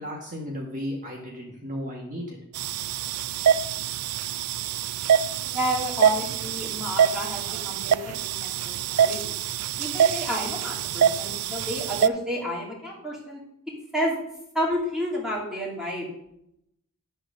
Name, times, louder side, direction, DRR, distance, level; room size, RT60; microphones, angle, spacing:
voice 1, 0.0-2.4, equal, 35° right, -2 dB, 1.4 m, -34 dB
sound 1, 2.5-12.1, right 8 dB, 85° right, 0.4 m, -25 dB
voice 2, 5.4-9.3 9.8-13.4 13.9-14.2 14.5-16.1, equal, 5° right, -4 dB, 2.4 m, -30 dB
10.5 x 4.0 x 6.3 m, 0.78 s
head